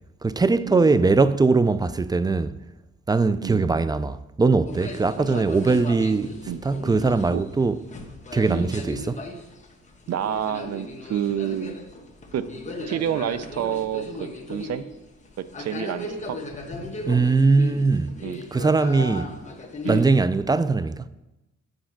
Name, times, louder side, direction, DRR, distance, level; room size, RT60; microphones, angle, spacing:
voice 1, 0.2-2.6 3.1-6.3 6.6-7.8 8.3-9.2 17.1-18.2 18.5-19.3 19.9-21.1, right 3 dB, 15° right, 0.4 m, -21 dB
voice 2, 3.4-3.8 5.2-5.4 6.5-6.6 7.3-7.4 8.5-8.7 10.1-11.8 12.3-12.5 12.9-14.8 15.4-16.4 18.2-18.4 19.8-20.1, right 10 dB, 55° right, 0.6 m, -29 dB
sound 1, 4.7-20.1, left 2 dB, 25° left, 1.4 m, -36 dB
7.8 x 6.2 x 5.9 m
cardioid pair, 90°, 30 cm